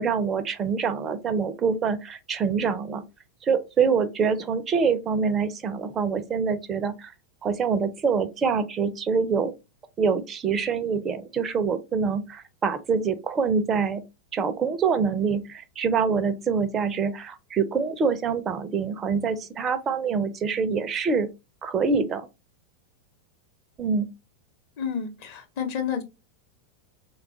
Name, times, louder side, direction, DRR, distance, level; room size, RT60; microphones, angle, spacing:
voice 1, 0.0-3.0 3.4-7.1 7.4-9.5 10.0-14.0 14.3-21.3 21.6-22.3 23.8-24.1, right 5 dB, 25° right, 0.4 m, -25 dB
voice 2, 24.8-26.0, left 7 dB, 45° left, 0.8 m, -30 dB
3.4 x 2.3 x 3.7 m
figure-of-eight pair, 90°, 0 cm